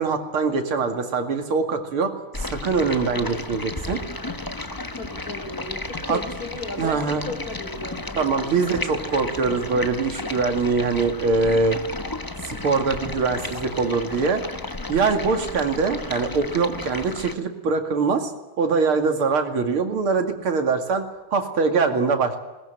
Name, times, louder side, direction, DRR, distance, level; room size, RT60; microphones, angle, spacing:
voice 1, 0.0-4.0 6.1-6.2 6.8-7.2 8.1-11.8 12.4-14.4 14.9-18.3 18.6-22.4, right 4 dB, 90° right, 5 dB, 3.1 m, -23 dB
Stream, 2.3-17.3, left 2 dB, 25° left, 0.4 m, -33 dB
voice 2, 4.9-9.1, left 2 dB, 45° left, 6 dB, 3.8 m, -36 dB
21.0 x 19.5 x 9.2 m, 1.1 s
omnidirectional pair, 2.3 m